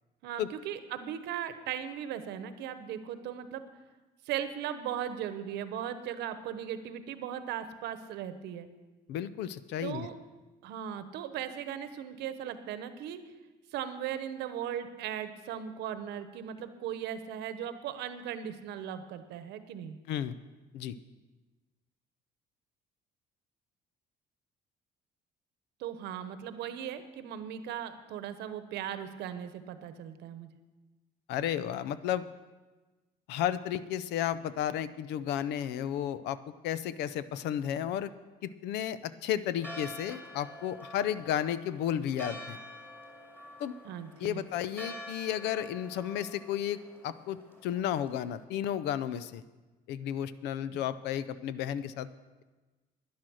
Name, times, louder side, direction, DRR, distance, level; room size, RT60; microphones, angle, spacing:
voice 1, 0.2-3.6 4.2-8.7 9.8-10.1 10.6-13.2 13.7-20.0 25.8-30.5 43.8-44.4, right 9 dB, 80° right, 11 dB, 1.0 m, -38 dB
voice 2, 9.1-10.1 20.1-20.4 20.7-21.0 31.3-32.2 33.3-36.4 36.6-38.1 38.4-42.6 43.6-43.7 44.2-46.8 47.0-49.4 49.9-52.1, left 10 dB, 85° left, 15 dB, 0.6 m, -33 dB
Church bell, 39.6-48.4, equal, 10° left, 2.6 m, -47 dB
11.5 x 10.5 x 6.3 m, 1.2 s
cardioid pair, 110°, 17 cm